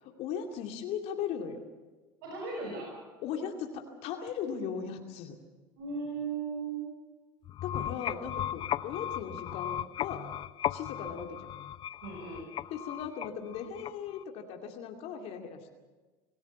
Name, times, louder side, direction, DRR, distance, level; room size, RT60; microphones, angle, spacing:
voice 1, 0.0-1.6 3.2-5.4 7.6-10.3 10.7-11.6 12.7-15.6, left 7 dB, 60° left, 3 dB, 2.5 m, -38 dB
voice 2, 2.2-3.0 5.8-6.9 12.0-12.4, right 4 dB, 80° right, 0 dB, 5.9 m, -37 dB
sound 1, 7.4-14.2, left 12 dB, 45° left, 0.6 m, -36 dB
25.5 x 16.5 x 7.1 m, 1.3 s
hypercardioid pair, 90°, 12 cm